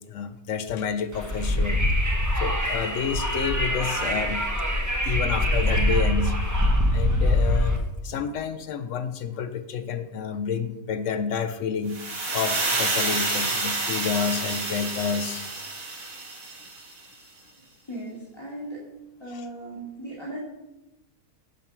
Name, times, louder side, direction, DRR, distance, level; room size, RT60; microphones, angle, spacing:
voice 1, 0.1-2.1 2.3-4.4 5.0-6.4 6.9-7.8 8.0-12.0 12.3-15.4 19.3-19.5, left 6 dB, 70° left, 10 dB, 0.8 m, -29 dB
Wind, 1.1-7.8, left 1 dB, 15° right, 0.7 m, -24 dB
sound 1, 11.9-16.9, right 2 dB, 65° right, 1.9 m, -28 dB
voice 2, 17.9-18.8 19.2-20.4, right 1 dB, 15° left, -7 dB, 2.0 m, -37 dB
7.5 x 5.1 x 5.9 m, 0.96 s
omnidirectional pair, 1.6 m